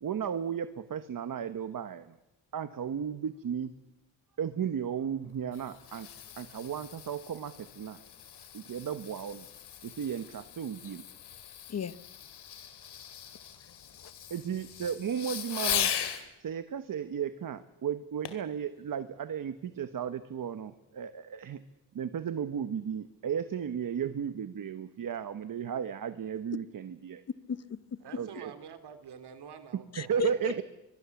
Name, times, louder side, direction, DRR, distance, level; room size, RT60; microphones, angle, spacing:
voice 1, 0.0-2.2 2.5-3.7 4.4-6.1 6.4-8.0 8.5-9.5 9.8-11.0 14.3-15.9 16.4-21.6 21.9-27.2 28.2-28.5 30.0-30.6, right 8 dB, 55° right, 11 dB, 1.1 m, -34 dB
Fireworks, 5.2-16.2 18.2-18.5 19.1-19.2, left 9 dB, 90° left, 2.7 m, -39 dB
voice 2, 13.6-14.1 27.5-28.0 29.9-30.6, left 6 dB, 40° left, 16 dB, 0.8 m, -35 dB
voice 3, 28.0-30.6, right 7 dB, 85° right, 9 dB, 2.8 m, -48 dB
23.0 x 23.0 x 7.2 m, 0.95 s
wide cardioid pair, 120°, 39 cm